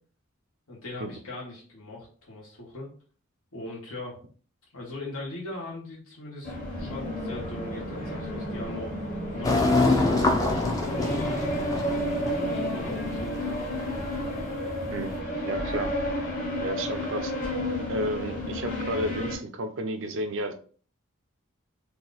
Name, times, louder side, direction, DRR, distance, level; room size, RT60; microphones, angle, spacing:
voice 1, 0.7-2.9 3.5-4.2 4.7-8.9 9.3-13.6, left 2 dB, 85° left, -5 dB, 1.3 m, -40 dB
sound 1, 6.4-19.4, equal, 40° left, 1.1 m, -31 dB
sound 2, 9.4-15.1, left 2 dB, 15° left, 0.4 m, -27 dB
voice 2, 15.4-15.9 16.6-17.3 17.9-20.5, right 1 dB, 65° right, 8 dB, 0.5 m, -31 dB
2.9 x 2.3 x 3.9 m, 0.42 s
head